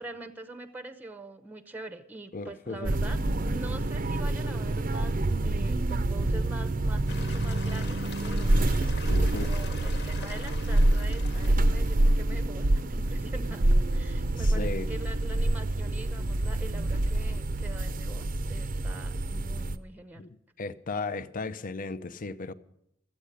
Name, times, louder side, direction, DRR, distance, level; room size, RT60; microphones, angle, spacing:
voice 1, 0.0-3.2 3.4-8.6 9.2-20.3, right 2 dB, 10° right, 0.7 m, -44 dB
voice 2, 2.3-2.9 9.1-9.5 14.4-14.9 20.2-20.3 20.6-22.5, left 3 dB, 40° left, 0.6 m, -35 dB
sound 1, 2.8-19.8, right 1 dB, 45° right, 0.6 m, -27 dB
sound 2, 7.1-12.1, left 4 dB, 55° left, 1.4 m, -44 dB
13.5 x 8.4 x 9.8 m
head